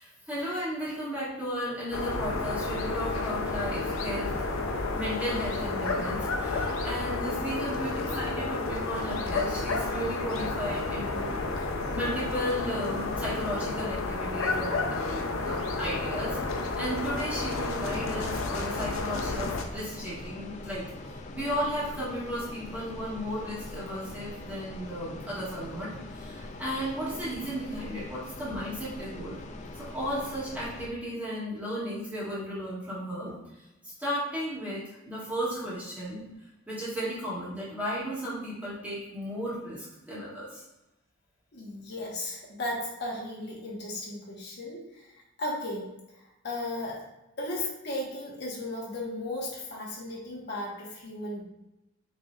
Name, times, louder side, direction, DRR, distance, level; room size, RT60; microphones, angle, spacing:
voice 1, 0.0-4.3 4.9-20.8 21.3-29.4 29.7-33.4 33.8-36.2 36.7-40.6, equal, 5° right, -9 dB, 1.5 m, -35 dB
sound 1, 1.9-19.6, left 3 dB, 85° left, 0.6 m, -31 dB
sound 2, 17.5-30.9, left 2 dB, 35° left, 0.4 m, -42 dB
voice 2, 41.5-45.1 45.4-45.8 46.4-47.1 47.4-51.4, left 1 dB, 55° left, -4 dB, 1.1 m, -35 dB
6.0 x 3.1 x 2.4 m, 0.94 s
head